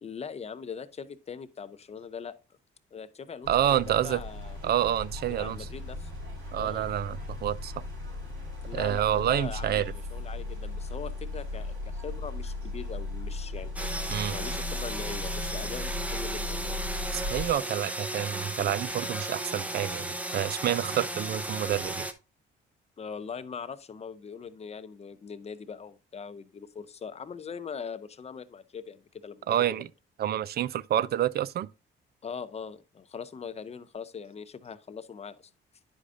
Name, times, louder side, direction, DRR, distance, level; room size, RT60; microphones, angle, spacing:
voice 1, 0.0-2.3 2.9-4.6 5.3-6.1 6.6-6.8 8.6-13.9 14.3-16.8 23.0-29.5 32.2-35.5, left 6 dB, 30° left, 0.6 m, -41 dB
sound 1, 3.4-17.5, left 2 dB, 80° right, 3.9 m, -37 dB
voice 2, 3.5-4.2 4.6-5.6 6.5-7.7 8.7-9.9 14.1-14.4 17.1-22.1 29.5-29.9 30.2-31.7, right 11 dB, 55° right, 0.4 m, -28 dB
sound 2, 13.8-22.1, right 1 dB, 5° right, 0.7 m, -35 dB
9.8 x 4.9 x 2.5 m
cardioid pair, 90°, 20 cm